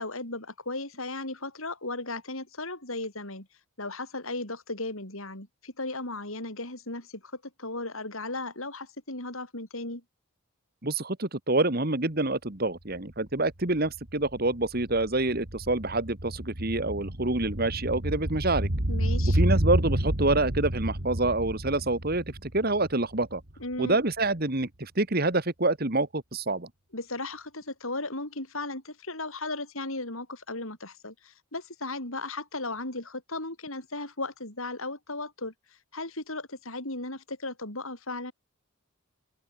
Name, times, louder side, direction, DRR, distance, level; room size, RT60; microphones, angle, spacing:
voice 1, 0.0-3.5 3.8-10.0 18.9-19.4 23.6-24.0 26.9-35.5 35.9-38.3, left 2 dB, 70° left, 7.5 m, -36 dB
voice 2, 10.8-18.7 19.3-23.4 23.8-26.7, right 2 dB, 45° right, 1.9 m, -27 dB
sound 1, 12.9-13.0 13.3-23.6 23.9-24.0, right 1 dB, 60° right, 3.2 m, -30 dB
open air
head